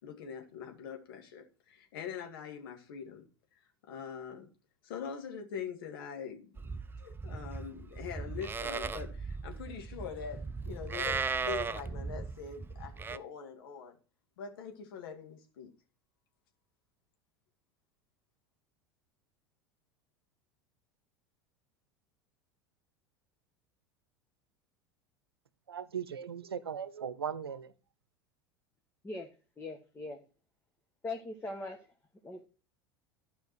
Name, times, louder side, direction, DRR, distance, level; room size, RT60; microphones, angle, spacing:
voice 1, 0.0-3.3 3.9-4.5 4.8-13.9 14.4-15.7, left 7 dB, 65° left, 2.3 m, -43 dB
Livestock farm animals working animals, 6.6-13.2, right 4 dB, 15° right, 0.6 m, -37 dB
voice 2, 25.7-27.7, right 8 dB, 80° right, 0.8 m, -38 dB
voice 3, 29.6-30.2 31.0-31.9 32.2-32.5, left 2 dB, 20° left, 1.6 m, -40 dB
13.0 x 5.6 x 4.5 m
figure-of-eight pair, 80°, 13 cm